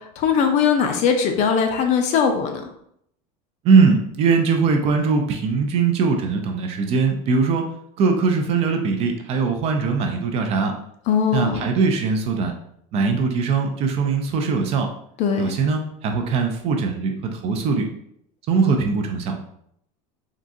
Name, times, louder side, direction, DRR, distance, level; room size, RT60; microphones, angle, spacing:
voice 1, 0.2-2.6 11.1-11.7 15.2-15.6, left 6 dB, 40° left, 5 dB, 0.4 m, -20 dB
voice 2, 3.6-7.6 8.0-10.7 11.3-12.5 12.9-14.9 15.4-17.9 18.5-19.3, right 5 dB, 35° right, 4 dB, 0.4 m, -21 dB
3.7 x 2.3 x 2.6 m, 0.71 s
supercardioid pair, 155°, 19 cm